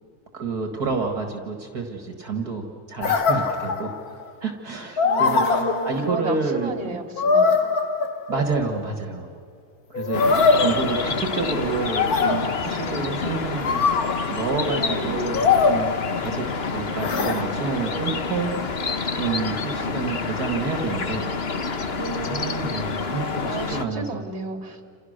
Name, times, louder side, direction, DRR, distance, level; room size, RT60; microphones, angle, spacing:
voice 1, 0.3-4.0 4.4-6.7 8.3-9.3 9.9-13.8 14.3-15.9 16.2-18.5 19.1-21.3 21.8-24.2, right 4 dB, 60° right, 4 dB, 2.4 m, -29 dB
sound 1, 3.0-4.2 5.0-6.4 7.2-8.6 9.9-11.5 12.0-12.9 13.6-14.5 15.3-16.5 17.0-17.4, left 4 dB, 55° left, 1.9 m, -22 dB
voice 2, 5.0-7.6 14.7-15.2 22.0-22.9 23.4-24.8, right 3 dB, 35° right, 5 dB, 3.0 m, -32 dB
sound 2, 10.1-23.9, left 4 dB, 40° left, 1.3 m, -28 dB
29.5 x 28.0 x 6.6 m, 2.4 s
omnidirectional pair, 1.9 m